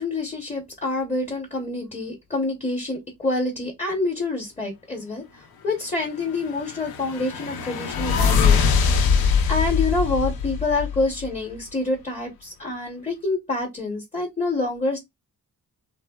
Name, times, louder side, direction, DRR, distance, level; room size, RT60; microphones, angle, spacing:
voice 1, 0.0-8.7 9.5-15.0, left 2 dB, 20° left, 0.8 m, -27 dB
sound 1, 6.4-11.4, left 6 dB, 90° left, 0.6 m, -22 dB
3.3 x 2.0 x 2.2 m
wide cardioid pair, 135°, 35 cm